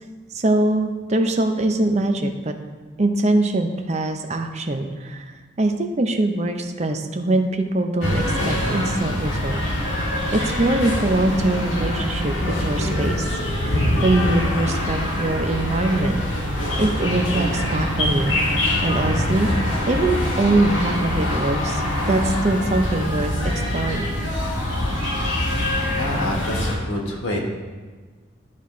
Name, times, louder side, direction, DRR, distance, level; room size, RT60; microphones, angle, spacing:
voice 1, 0.3-2.5 3.0-5.3 5.6-9.9 10.3-13.2 13.6-16.2 16.8-19.5 19.9-23.3 23.7-24.1, right 2 dB, 35° right, 5 dB, 0.6 m, -23 dB
sound 1, 8.0-26.8, left 1 dB, 75° left, 1.7 m, -24 dB
voice 2, 25.9-27.4, left 1 dB, 90° left, 0 dB, 1.4 m, -27 dB
12.0 x 4.2 x 3.1 m, 1.4 s
head